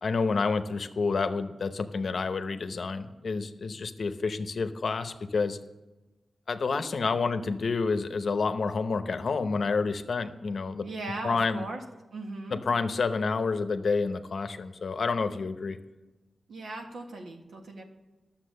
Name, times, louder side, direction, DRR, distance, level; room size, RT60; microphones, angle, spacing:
voice 1, 0.0-5.6 6.5-10.9 11.2-11.6 12.5-15.8, left 4 dB, 65° left, 9 dB, 0.8 m, -29 dB
voice 2, 10.8-11.8 12.1-12.6 16.5-17.8, right 2 dB, 85° right, 2 dB, 1.6 m, -38 dB
11.5 x 7.3 x 6.4 m, 1.1 s
wide cardioid pair, 90°, 0 cm